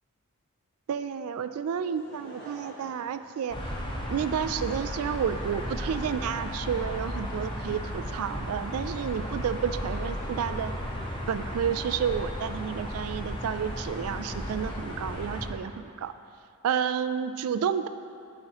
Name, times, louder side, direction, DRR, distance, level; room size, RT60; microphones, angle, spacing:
voice 1, 0.9-3.6 4.1-10.7 11.3-16.1 16.6-17.9, right 7 dB, 75° right, 12 dB, 0.3 m, -30 dB
Laughter / Crowd, 1.7-4.3 5.0-5.1, equal, 50° left, 1.6 m, -48 dB
sound 1, 3.5-15.5, equal, 20° left, 0.8 m, -35 dB
11.5 x 5.6 x 3.0 m, 2.4 s
head